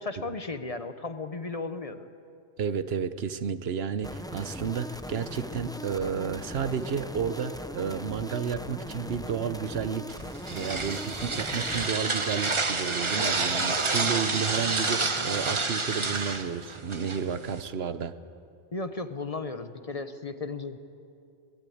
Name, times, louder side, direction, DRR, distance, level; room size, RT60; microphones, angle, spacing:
voice 1, 0.0-2.1 18.7-20.8, left 3 dB, 35° left, 9 dB, 0.9 m, -35 dB
voice 2, 2.6-18.1, right 7 dB, 75° right, 12 dB, 1.1 m, -32 dB
sound 1, 4.0-11.9, left 1 dB, 5° left, 0.5 m, -40 dB
sound 2, 10.1-17.6, right 3 dB, 30° right, 1.0 m, -29 dB
22.0 x 17.5 x 8.6 m, 2.4 s
omnidirectional pair, 1.1 m